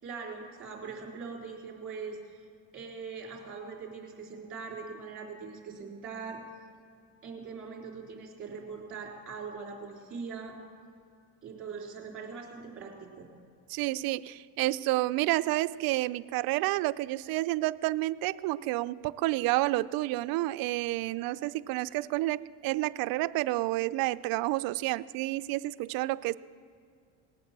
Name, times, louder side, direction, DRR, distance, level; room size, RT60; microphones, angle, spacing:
voice 1, 0.0-2.4 2.7-6.4 7.2-10.6 11.4-13.3, right 5 dB, 30° right, -1 dB, 3.6 m, -41 dB
voice 2, 13.7-26.4, right 18 dB, 60° right, 14 dB, 0.5 m, -30 dB
19.0 x 8.5 x 7.3 m, 2.2 s
cardioid pair, 130°, 42 cm